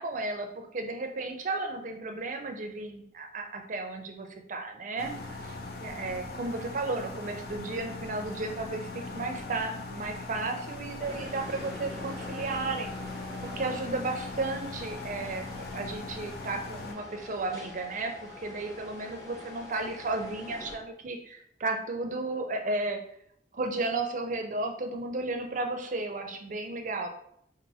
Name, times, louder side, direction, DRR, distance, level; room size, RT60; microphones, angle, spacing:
voice 1, 0.0-5.5 5.8-12.9 13.4-15.5 15.7-23.0 23.5-27.1, right 2 dB, 45° right, 4 dB, 0.5 m, -34 dB
sound 1, 5.0-16.9, left 3 dB, 55° left, 0.5 m, -40 dB
sound 2, 11.0-20.7, left 1 dB, 20° left, 1.0 m, -45 dB
5.4 x 2.5 x 2.7 m, 0.69 s
head